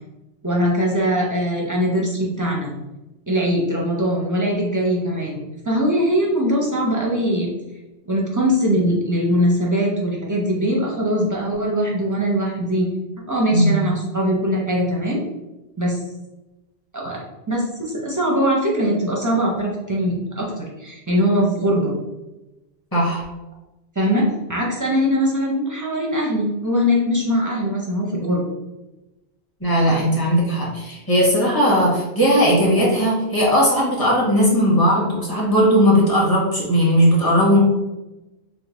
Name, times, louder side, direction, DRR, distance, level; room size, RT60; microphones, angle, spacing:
voice 1, 0.4-2.7 3.3-7.5 8.1-12.9 13.3-15.2 15.8-16.0 16.9-17.2 17.5-21.9 24.0-28.4, equal, 25° right, -3 dB, 0.5 m, -21 dB
voice 2, 13.5-13.9 22.9-23.2 29.6-37.6, equal, 20° left, -5 dB, 1.1 m, -17 dB
3.2 x 2.1 x 3.8 m, 1.0 s
omnidirectional pair, 1.1 m